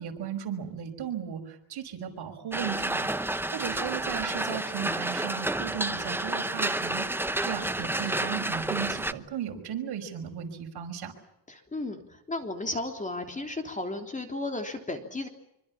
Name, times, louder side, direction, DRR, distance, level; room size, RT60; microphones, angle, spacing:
voice 1, 0.0-3.1 3.5-11.1, right 8 dB, 55° right, 4 dB, 5.8 m, -36 dB
sound 1, 2.5-9.1, right 1 dB, 5° right, 0.9 m, -30 dB
voice 2, 11.5-15.3, left 2 dB, 15° left, 5 dB, 3.4 m, -34 dB
26.0 x 25.0 x 7.4 m, 0.83 s
cardioid pair, 130°, 47 cm